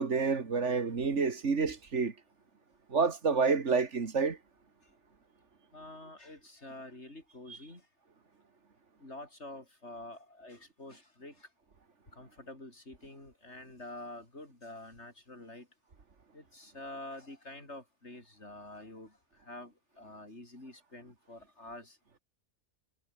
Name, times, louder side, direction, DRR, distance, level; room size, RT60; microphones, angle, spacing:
voice 1, 0.0-2.1 2.9-4.4, right 5 dB, 85° right, 2.3 m, -28 dB
voice 2, 5.7-7.8 9.0-11.5 12.2-15.7 16.3-19.1 19.5-22.0, left 2 dB, 75° left, 6.4 m, -47 dB
omnidirectional pair, 1.2 m